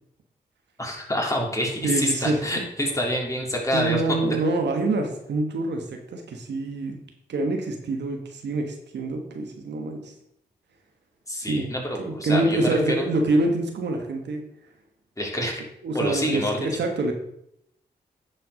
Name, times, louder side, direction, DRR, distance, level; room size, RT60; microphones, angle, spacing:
voice 1, 0.8-4.0 11.3-13.1 15.2-15.6 15.9-16.5, equal, 20° left, -1 dB, 3.3 m, -27 dB
voice 2, 1.8-2.4 3.7-7.0 7.3-10.1 11.4-11.7 12.0-14.4 15.8-17.1, right 2 dB, 75° right, 4 dB, 1.3 m, -26 dB
10.0 x 4.6 x 5.0 m, 0.77 s
supercardioid pair, 40°, 18 cm